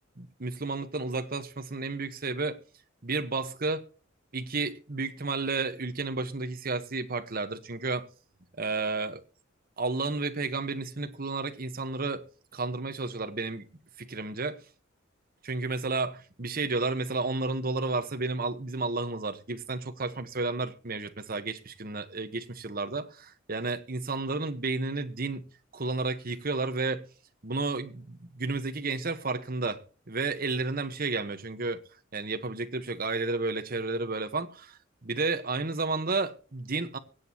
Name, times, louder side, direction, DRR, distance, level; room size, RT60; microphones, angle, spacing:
voice 1, 0.2-2.6 3.0-3.8 4.3-8.1 8.6-9.2 9.8-12.2 12.5-13.6 14.0-14.6 15.4-25.5 25.7-27.0 27.4-29.8 30.1-31.8 32.1-37.0, right 3 dB, 45° right, 1.3 m, -32 dB
24.0 x 8.4 x 3.0 m
head